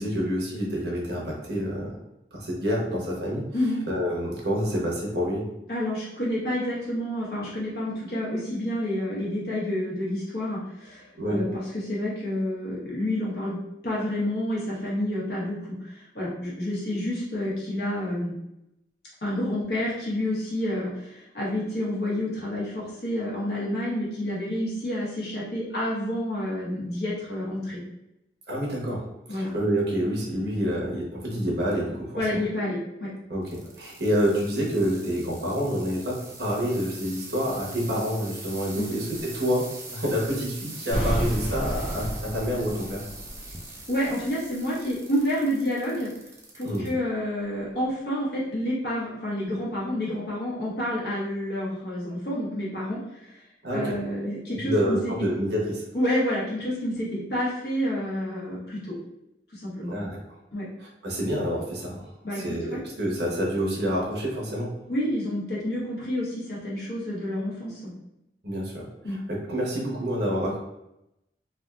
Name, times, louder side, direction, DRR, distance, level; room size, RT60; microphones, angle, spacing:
voice 1, 0.0-2.0 2.3-3.4 3.9-5.4 11.2-11.4 28.5-29.0 29.3-32.2 33.3-43.0 46.6-46.9 53.6-54.0 54.6-55.8 59.9-60.4 60.8-62.0 62.3-64.7 68.4-70.6, equal, 70° right, -3 dB, 1.0 m, -28 dB
voice 2, 5.7-18.4 19.2-27.8 29.3-29.5 32.2-33.1 38.8-38.9 43.9-46.1 46.5-53.4 53.7-55.3 55.9-58.9 59.5-59.9 60.5-60.7 62.2-62.8 64.9-67.9 69.0-69.2, left 1 dB, 65° left, -6 dB, 1.2 m, -29 dB
sound 1, 33.4-46.9 47.4-47.9 48.5-48.6, right 2 dB, 15° right, 0.4 m, -43 dB
sound 2, 40.9-43.8 44.0-44.1, equal, 30° left, 0.7 m, -31 dB
3.4 x 2.5 x 2.4 m, 0.87 s
head